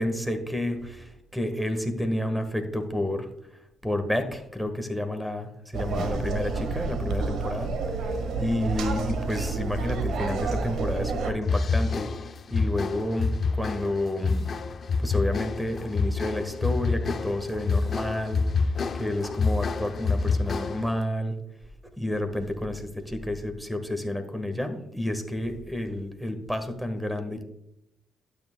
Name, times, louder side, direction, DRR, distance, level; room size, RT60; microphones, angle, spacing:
voice 1, 0.0-3.3 3.8-7.7 8.0-12.1 12.5-14.4 15.0-18.4 18.9-21.4 21.6-27.4, left 1 dB, ahead, 8 dB, 1.4 m, -30 dB
sound 1, 5.7-11.3, right 4 dB, 75° right, 1.5 m, -29 dB
sound 2, 11.4-21.0, left 4 dB, 45° left, 0.6 m, -27 dB
12.0 x 8.9 x 2.3 m, 0.83 s
cardioid pair, 90°, 0 cm